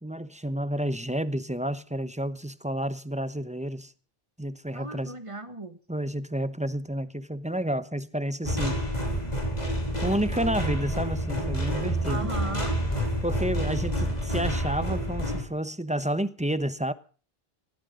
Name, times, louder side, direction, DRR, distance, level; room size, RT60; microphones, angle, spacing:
voice 1, 0.0-3.9 4.4-5.1 5.9-8.8 10.0-12.3 13.2-16.9, right 1 dB, 5° right, 1.0 m, -30 dB
voice 2, 4.7-5.8 12.1-12.8, right 2 dB, 30° right, 1.9 m, -36 dB
sound 1, 8.4-15.4, equal, 40° left, 3.7 m, -28 dB
20.5 x 17.0 x 3.9 m
omnidirectional pair, 1.0 m